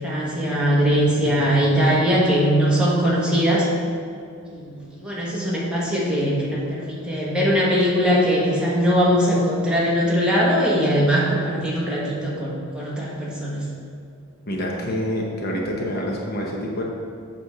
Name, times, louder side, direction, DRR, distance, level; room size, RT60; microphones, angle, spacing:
voice 1, 0.0-3.7 4.5-13.6, equal, 5° right, -6 dB, 1.3 m, -21 dB
voice 2, 14.5-16.8, equal, 45° left, -1 dB, 0.9 m, -27 dB
8.1 x 3.5 x 6.5 m, 2.4 s
head